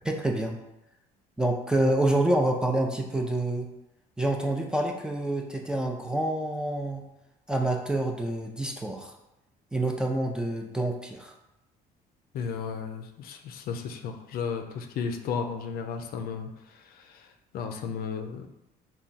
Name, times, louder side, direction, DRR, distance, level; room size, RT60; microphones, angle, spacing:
voice 1, 0.0-0.6 1.4-3.7 4.2-7.0 7.5-9.1 9.7-11.3, right 1 dB, 5° right, 1 dB, 0.4 m, -27 dB
voice 2, 12.3-18.5, left 6 dB, 60° left, 5 dB, 0.4 m, -34 dB
3.5 x 2.2 x 4.0 m, 0.89 s
cardioid pair, 110°, 17 cm